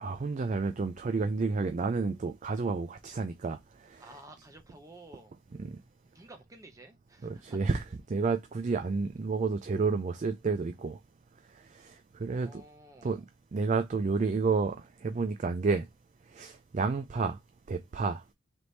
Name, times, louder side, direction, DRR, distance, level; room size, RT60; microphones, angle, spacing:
voice 1, 0.0-4.1 5.6-5.8 7.2-11.0 11.6-12.6 13.0-13.2 13.5-15.9 16.3-17.4 17.7-18.2, right 4 dB, 35° right, 0.3 m, -30 dB
voice 2, 4.0-5.3 6.1-7.6 11.8-11.9 12.3-13.2, right 1 dB, 15° right, 0.8 m, -52 dB
3.4 x 3.0 x 3.9 m
head